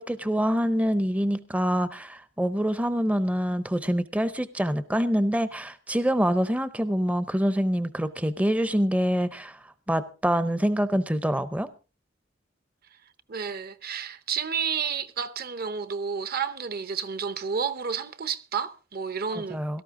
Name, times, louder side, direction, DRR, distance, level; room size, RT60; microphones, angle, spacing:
voice 1, 0.0-9.6 9.9-11.7 19.3-19.8, equal, 5° right, 0.6 m, -25 dB
voice 2, 13.3-19.6, right 6 dB, 50° right, 0.8 m, -31 dB
17.5 x 13.5 x 3.7 m
head